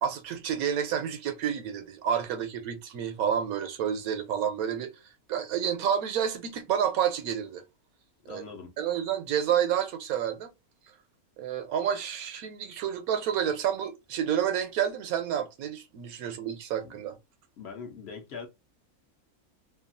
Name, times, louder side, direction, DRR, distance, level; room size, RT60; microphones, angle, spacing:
voice 1, 0.0-4.9 5.3-7.6 8.3-8.5 8.8-10.5 11.4-17.2, right 9 dB, 75° right, 1.1 m, -29 dB
voice 2, 8.2-8.7 16.8-16.9 17.6-18.5, left 5 dB, 55° left, 0.8 m, -42 dB
2.8 x 2.3 x 2.5 m
omnidirectional pair, 1.6 m